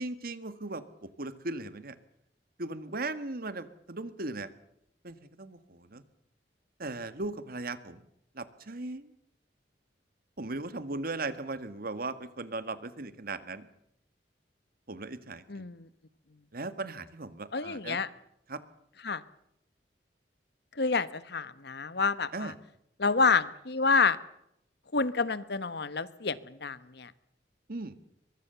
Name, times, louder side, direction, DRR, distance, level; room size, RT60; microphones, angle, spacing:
voice 1, 0.0-1.9 2.6-4.5 5.0-6.0 6.8-8.0 8.3-9.1 10.4-13.7 14.9-15.7 16.5-18.0 18.5-18.6 22.3-22.5 27.7-28.0, right 2 dB, 55° right, 13 dB, 1.7 m, -38 dB
voice 2, 15.5-15.9 17.5-18.1 19.0-19.2 20.8-22.5 23.0-24.2 24.9-27.1, left 4 dB, 65° left, 16 dB, 1.2 m, -28 dB
23.5 x 22.5 x 6.9 m, 0.76 s
head